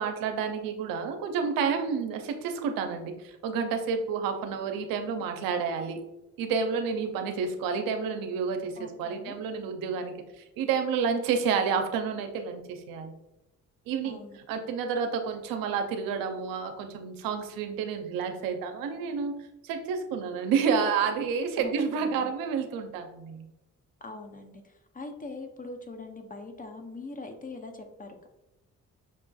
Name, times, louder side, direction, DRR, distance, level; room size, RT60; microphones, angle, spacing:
voice 1, 0.0-6.0 6.4-13.1 13.9-14.2 14.5-19.3 19.6-23.5, right 6 dB, 85° right, 6 dB, 0.5 m, -30 dB
voice 2, 8.8-9.4 14.0-14.4 21.6-22.3 24.0-28.3, left 3 dB, 25° left, 5 dB, 0.6 m, -42 dB
5.9 x 2.4 x 2.3 m, 0.94 s
supercardioid pair, 60°, 33 cm